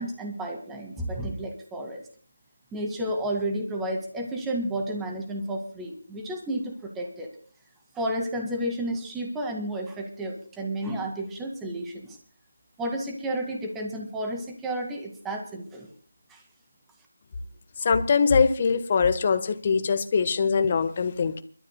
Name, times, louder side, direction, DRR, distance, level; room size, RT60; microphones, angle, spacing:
voice 1, 0.0-2.0 2.7-7.3 8.0-12.2 12.8-15.9 16.3-16.4, right 1 dB, 5° right, 2 dB, 2.0 m, -31 dB
voice 2, 17.8-21.4, left 5 dB, 35° left, 10 dB, 1.3 m, -22 dB
29.0 x 13.0 x 2.3 m, 0.43 s
figure-of-eight pair, 165°, 0 cm